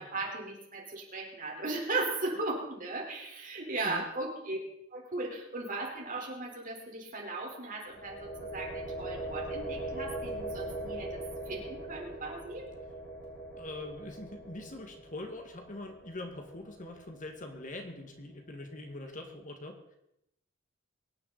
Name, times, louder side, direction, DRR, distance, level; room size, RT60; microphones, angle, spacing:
voice 1, 0.0-4.6 4.9-12.7, right 2 dB, 45° right, -1 dB, 4.4 m, -37 dB
sound 1, 7.9-17.7, right 2 dB, 60° left, 5.2 m, -41 dB
voice 2, 13.5-20.0, left 2 dB, 40° left, 4 dB, 1.9 m, -43 dB
23.5 x 9.8 x 4.2 m, 0.81 s
head